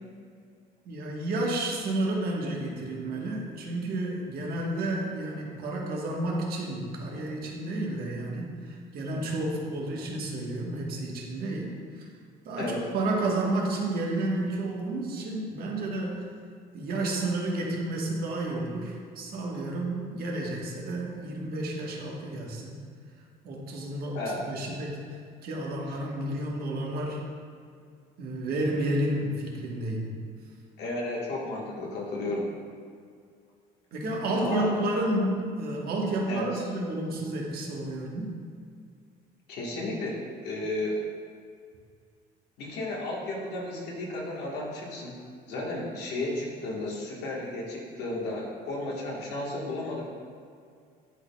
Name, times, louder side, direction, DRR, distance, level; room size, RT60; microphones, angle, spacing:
voice 1, 0.8-12.1 12.4-16.3 16.7-22.8 23.4-27.2 28.2-30.1 33.9-38.4, right 1 dB, 65° right, -2 dB, 1.2 m, -31 dB
voice 2, 30.8-32.5 34.3-34.7 36.3-36.5 39.5-41.0 42.6-45.2 45.5-50.1, left 2 dB, 80° left, -3 dB, 1.4 m, -33 dB
10.5 x 4.1 x 2.2 m, 2.2 s
cardioid pair, 110°, 17 cm